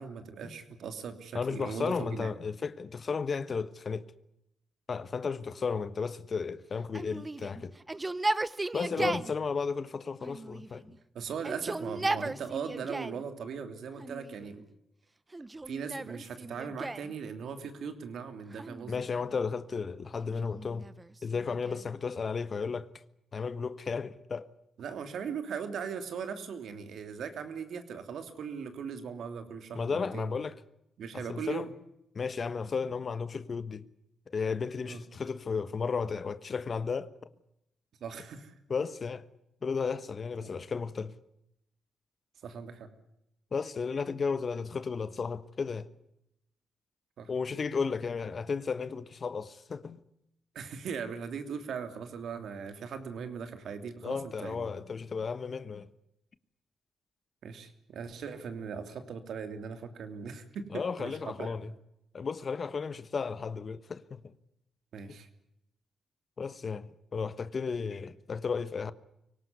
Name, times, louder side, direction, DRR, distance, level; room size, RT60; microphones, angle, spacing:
voice 1, 0.0-2.3 9.0-9.1 11.1-14.6 15.7-19.0 24.8-30.3 31.0-31.7 34.8-35.0 38.0-38.5 40.4-40.5 42.4-42.9 47.2-47.3 50.5-54.7 57.4-61.7 64.9-65.3, right 6 dB, 75° right, 3.0 m, -39 dB
voice 2, 1.3-4.1 4.9-7.7 8.7-10.9 18.9-20.9 21.2-22.9 23.3-24.5 29.7-30.5 31.1-31.7 32.1-33.8 34.3-37.1 38.7-39.3 39.6-41.1 43.5-45.9 47.3-50.0 54.0-55.9 60.7-61.7 62.1-64.3 66.4-68.9, left 5 dB, 45° left, 1.3 m, -34 dB
Yell, 6.9-9.3 10.2-11.0 11.3-13.2 14.0-14.6 15.3-17.1 18.5-19.4 20.2-21.9, right 2 dB, 20° right, 1.1 m, -36 dB
24.5 x 18.0 x 9.5 m
cardioid pair, 75°, 0 cm